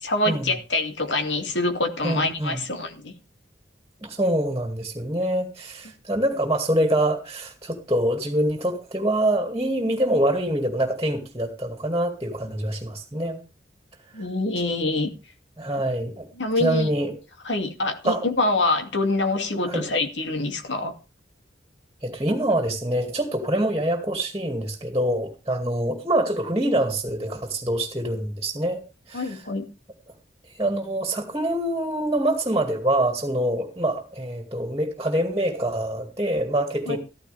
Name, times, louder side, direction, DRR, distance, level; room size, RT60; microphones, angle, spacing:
voice 1, 0.0-3.1 14.1-15.1 16.4-16.9 17.4-20.9 29.1-29.7 36.9-37.0, left 2 dB, 85° left, 2.5 m, -25 dB
voice 2, 2.0-2.6 4.0-13.4 15.6-16.3 16.6-17.1 18.0-18.3 19.7-19.8 22.0-28.8 29.1-29.3 30.6-37.0, right 1 dB, 20° right, 2.3 m, -25 dB
14.5 x 14.0 x 3.5 m
head